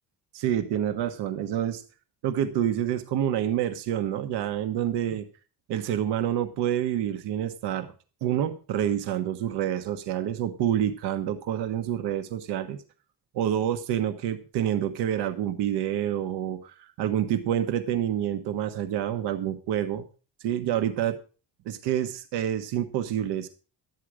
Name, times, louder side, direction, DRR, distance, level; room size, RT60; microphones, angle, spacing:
voice 1, 0.3-1.8 2.2-5.2 5.7-7.9 8.2-12.8 13.3-20.1 20.4-21.2 21.6-23.5, right 10 dB, 90° right, 8 dB, 1.3 m, -28 dB
12.5 x 9.4 x 5.0 m, 0.36 s
cardioid pair, 125°, 40 cm